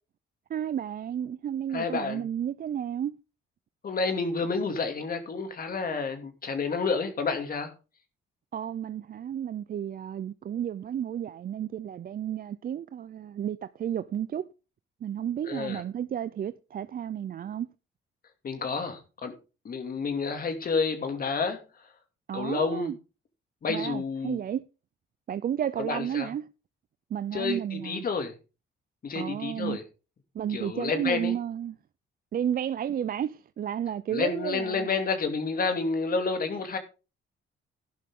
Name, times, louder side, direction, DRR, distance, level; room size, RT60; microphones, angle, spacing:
voice 1, 0.5-3.2 8.5-14.5 15.0-17.7 22.3-23.0 23.7-24.7 25.3-26.5 27.1-28.0 29.1-29.8 30.3-31.8 32.3-34.9, right 9 dB, 45° right, 0.5 m, -32 dB
voice 2, 1.7-2.2 3.8-7.7 15.5-15.8 18.4-19.3 19.6-21.6 22.3-22.9 23.6-24.4 25.8-26.3 27.3-28.3 29.0-29.8 30.5-31.3 34.1-36.8, left 4 dB, 45° left, 2.6 m, -29 dB
11.5 x 11.5 x 3.7 m
cardioid pair, 90°, 20 cm